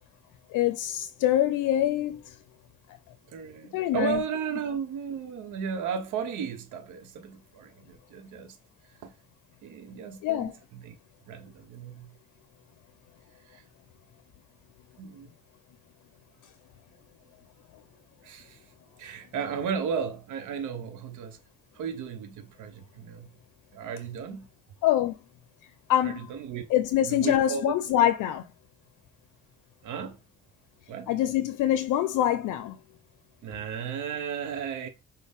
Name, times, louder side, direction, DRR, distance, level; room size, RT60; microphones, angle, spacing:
voice 1, 0.5-2.3 3.7-4.2 10.2-10.5 24.8-25.2 25.9-26.2 26.7-28.4 31.1-32.8, left 12 dB, 85° left, 0.5 m, -25 dB
voice 2, 3.3-8.6 9.0-9.1 9.6-11.0 11.3-12.1 13.4-13.6 15.0-15.3 18.2-18.6 19.0-21.4 21.7-23.3 23.7-24.5 26.0-26.6 27.0-27.7 29.8-30.2 30.9-31.1 33.4-34.9, right 7 dB, 80° right, 0.8 m, -34 dB
6.2 x 2.2 x 3.5 m
cardioid pair, 90°, 30 cm